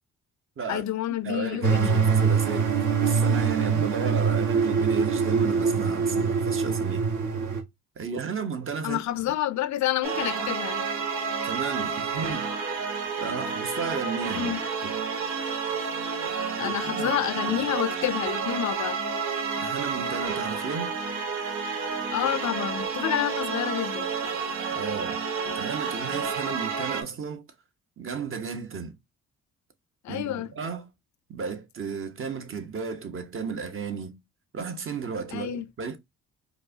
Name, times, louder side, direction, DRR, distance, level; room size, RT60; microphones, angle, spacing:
voice 1, 0.7-2.1 8.8-10.9 14.4-14.6 16.5-19.0 22.1-24.1 30.0-30.5 35.3-35.7, left 12 dB, 70° left, 0.5 m, -29 dB
voice 2, 1.2-7.1 8.0-9.0 11.4-12.5 13.2-14.6 14.8-14.9 16.6-17.2 17.6-17.7 19.6-20.9 24.7-27.5 28.0-29.0 30.1-30.9 31.3-34.2 34.5-36.0, right 5 dB, 45° right, 0.9 m, -34 dB
sound 1, 1.6-7.6, right 5 dB, 65° right, 1.3 m, -24 dB
sound 2, 10.0-27.0, right 5 dB, 80° right, 1.0 m, -30 dB
4.7 x 2.1 x 2.7 m
cardioid pair, 90°, 30 cm